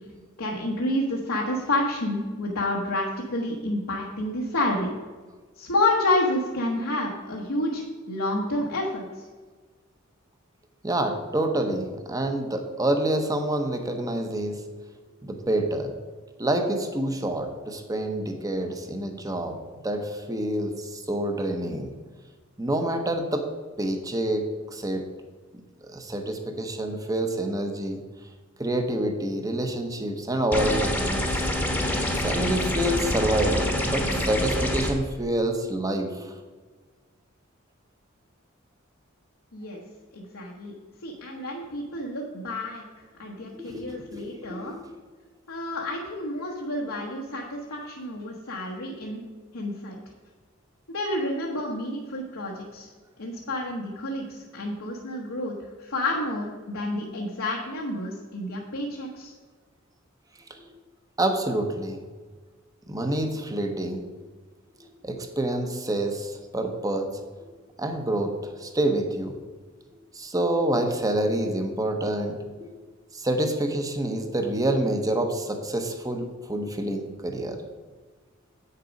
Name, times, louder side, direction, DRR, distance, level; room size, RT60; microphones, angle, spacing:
voice 1, 0.4-4.9 5.6-9.0 39.5-39.8 40.1-40.7 41.0-42.8 43.2-44.7 45.5-49.2 49.5-50.0 50.9-52.9 53.2-59.3, left 1 dB, 80° left, -2 dB, 1.1 m, -29 dB
voice 2, 10.8-14.6 15.2-15.9 16.4-19.6 19.8-21.9 22.6-23.5 23.8-25.0 25.8-28.0 28.6-31.5 32.1-36.3 43.5-44.7 60.6-60.7 61.2-62.0 62.9-64.1 64.8-67.1 67.8-69.4 70.1-72.7 73.1-77.6, right 1 dB, 15° right, 5 dB, 0.9 m, -27 dB
sound 1, 30.5-34.9, left 1 dB, 5° left, 1.1 m, -26 dB
8.3 x 6.7 x 5.2 m, 1.4 s
head